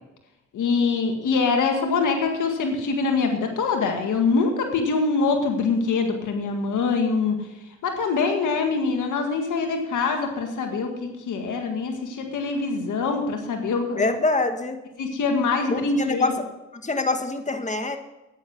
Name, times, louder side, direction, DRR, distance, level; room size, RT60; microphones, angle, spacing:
voice 1, 0.5-7.4 7.8-14.1 15.0-16.3, left 4 dB, 90° left, 4 dB, 1.8 m, -24 dB
voice 2, 14.0-14.8 15.7-16.3 16.7-18.0, left 3 dB, 25° left, 6 dB, 1.6 m, -25 dB
10.5 x 9.6 x 6.0 m, 0.96 s
cardioid pair, 50°, 30 cm